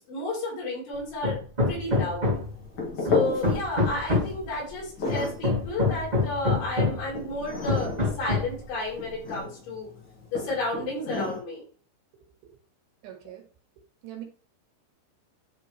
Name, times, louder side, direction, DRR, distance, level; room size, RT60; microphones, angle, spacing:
voice 1, 0.1-1.4 1.7-2.3 3.0-7.9 8.2-9.9 10.3-11.6, left 2 dB, 75° left, -5 dB, 6.8 m, -32 dB
Hammer, 1.2-2.6 3.0-4.4 5.1-7.1 7.7-8.6, left 3 dB, 20° right, 1.1 m, -26 dB
sound 1, 2.3-11.4, left 3 dB, 45° left, 1.5 m, -34 dB
voice 2, 13.0-13.5 14.0-14.2, right 12 dB, 75° right, 2 dB, 3.8 m, -41 dB
11.5 x 4.3 x 3.1 m, 0.41 s
omnidirectional pair, 5.3 m